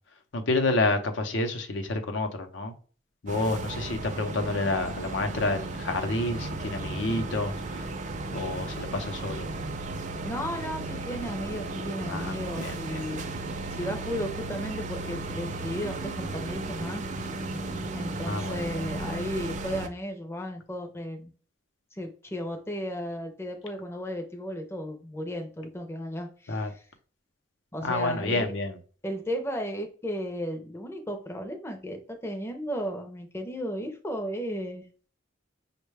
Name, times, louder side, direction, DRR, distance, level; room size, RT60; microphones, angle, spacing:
voice 1, 0.3-2.7 3.2-7.5 8.3-9.5 12.1-12.3 12.6-13.1 18.2-18.6 26.5-26.7 27.8-28.8, left 2 dB, 75° left, 0.7 m, -29 dB
sound 1, 3.3-19.9, right 2 dB, 40° right, 0.4 m, -35 dB
voice 2, 10.2-13.2 13.7-17.0 17.9-21.3 21.9-26.8 27.7-28.5 29.0-35.1, equal, 15° left, 0.5 m, -34 dB
5.4 x 2.1 x 3.3 m
head